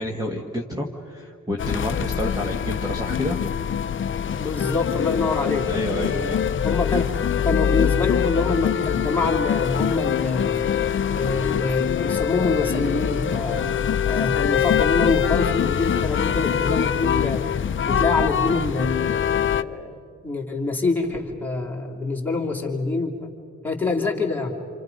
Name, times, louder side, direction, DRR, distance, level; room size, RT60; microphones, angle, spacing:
voice 1, 0.0-3.4 5.7-6.4, left 1 dB, 10° right, 0 dB, 1.4 m, -29 dB
sound 1, 1.6-19.6, left 8 dB, 40° left, 0.6 m, -24 dB
voice 2, 4.0-5.7 6.0-10.7 11.1-13.6 14.0-17.4 17.8-20.0 20.2-23.1 23.6-24.6, left 3 dB, 5° left, -2 dB, 2.6 m, -26 dB
28.5 x 27.5 x 5.3 m, 2.4 s
wide cardioid pair, 160°, 32 cm